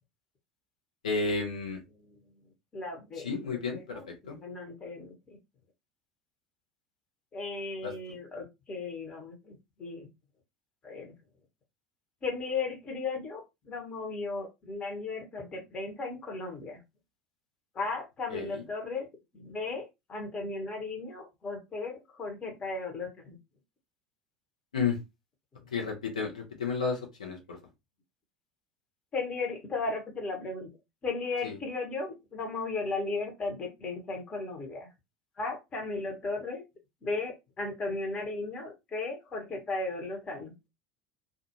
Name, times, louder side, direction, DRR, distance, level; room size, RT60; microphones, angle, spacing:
voice 1, 1.0-1.8 3.2-4.0 4.3-4.4 7.8-7.9 18.3-18.5 24.7-25.0 25.7-27.6 31.4-31.5, left 4 dB, 75° left, 2 dB, 0.7 m, -31 dB
voice 2, 2.7-5.1 7.3-10.1 10.8-11.1 12.2-16.8 17.7-19.1 19.3-23.4 25.6-25.7 29.1-30.7 31.0-34.9 35.4-36.6 37.0-40.5, left 3 dB, 30° left, 2 dB, 1.0 m, -36 dB
2.4 x 2.3 x 2.9 m, 0.22 s
figure-of-eight pair, 70°, 4 cm